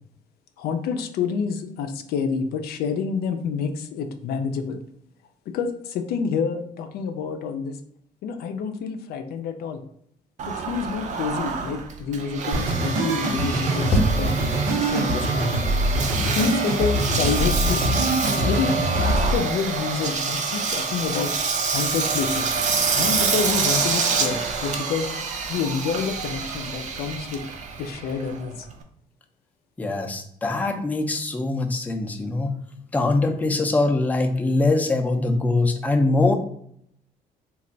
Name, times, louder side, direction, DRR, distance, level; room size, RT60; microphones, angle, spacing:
voice 1, 0.6-4.8 5.5-7.8 8.2-9.8 10.5-14.5 14.9-15.6 16.2-17.9 18.4-22.5 23.0-25.1 25.5-27.5 27.8-28.7, left 6 dB, 85° left, 7 dB, 0.4 m, -28 dB
Engine, 10.4-28.8, right 5 dB, 50° right, 0.5 m, -27 dB
sound 1, 12.5-19.4, right 1 dB, 80° right, 0.8 m, -24 dB
sound 2, 13.9-27.9, equal, 40° left, 0.7 m, -36 dB
voice 2, 29.8-32.5 32.9-36.4, left 2 dB, 10° left, 3 dB, 0.4 m, -22 dB
3.3 x 2.3 x 3.8 m, 0.69 s
cardioid pair, 125°, 16 cm